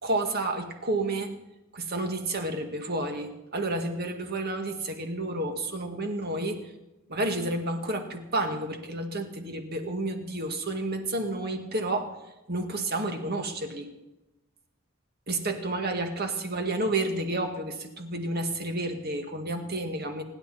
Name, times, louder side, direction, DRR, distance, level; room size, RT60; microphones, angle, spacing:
voice 1, 0.0-1.3 1.7-6.7 7.1-12.2 12.5-13.9 15.3-20.2, right 2 dB, 50° right, 5 dB, 2.1 m, -30 dB
27.5 x 11.0 x 4.3 m, 0.98 s
head